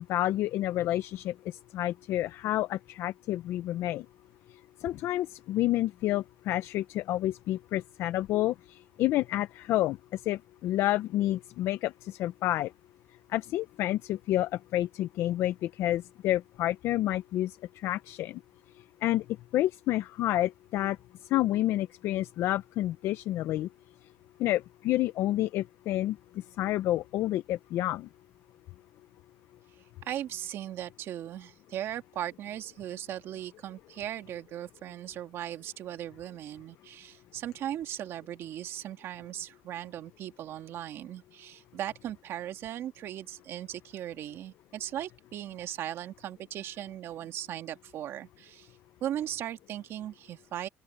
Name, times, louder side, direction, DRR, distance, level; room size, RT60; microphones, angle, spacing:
voice 1, 0.0-4.0 4.8-12.7 13.3-17.6 17.8-18.4 19.0-19.2 19.5-21.0 21.3-23.7 24.4-26.2 26.6-28.1, left 14 dB, 70° left, 0.6 m, -29 dB
voice 2, 30.0-48.8 49.0-50.7, right 11 dB, 65° right, 2.1 m, -38 dB
open air
cardioid pair, 95°, 5 cm